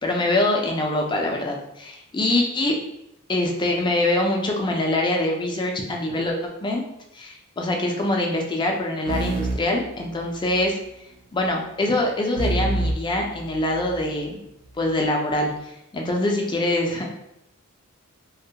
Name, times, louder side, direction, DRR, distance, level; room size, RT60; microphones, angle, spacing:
voice 1, 0.0-2.8 3.3-6.8 7.1-10.8 11.3-14.4 14.8-17.1, left 1 dB, 20° left, 1 dB, 0.4 m, -24 dB
sound 1, 9.1-10.7 12.4-14.1, right 2 dB, 70° right, 0.4 m, -28 dB
2.2 x 2.1 x 2.7 m, 0.84 s
head